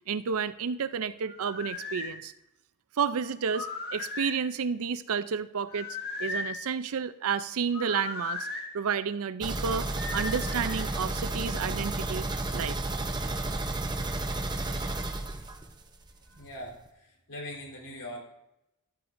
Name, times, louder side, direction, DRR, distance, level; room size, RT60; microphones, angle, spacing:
voice 1, 0.1-2.3 3.0-5.9 6.2-8.5 8.7-12.8, right 6 dB, 65° right, 14 dB, 0.5 m, -31 dB
sound 1, 1.3-2.1 3.5-4.4 5.7-6.6 7.7-8.7 10.0-10.8, left 3 dB, 50° left, 1.7 m, -36 dB
sound 2, 9.4-16.1 16.4-16.5 16.9-17.0, right 2 dB, 20° right, 0.8 m, -32 dB
voice 2, 16.3-18.2, left 1 dB, 80° left, -1 dB, 4.0 m, -42 dB
13.5 x 11.5 x 2.6 m, 0.88 s
head